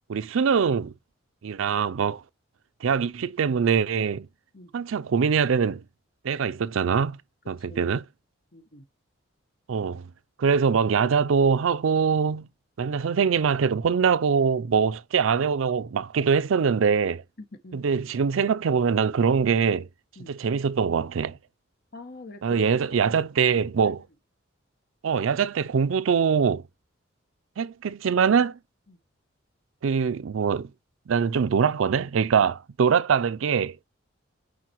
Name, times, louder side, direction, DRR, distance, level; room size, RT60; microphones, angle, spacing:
voice 1, 0.1-0.9 1.4-2.2 2.8-4.3 4.7-5.8 6.2-7.2 7.5-8.1 9.7-10.1 10.4-12.5 12.8-17.2 17.7-19.9 20.3-21.4 22.4-24.0 25.0-26.6 27.6-28.6 29.8-30.7 31.1-33.8, right 6 dB, 80° right, 0.4 m, -23 dB
voice 2, 8.5-8.8 17.4-18.1 20.2-20.3 21.9-22.6 22.9-23.2 28.9-29.0, left 2 dB, 50° left, 1.2 m, -45 dB
8.6 x 4.2 x 3.0 m
head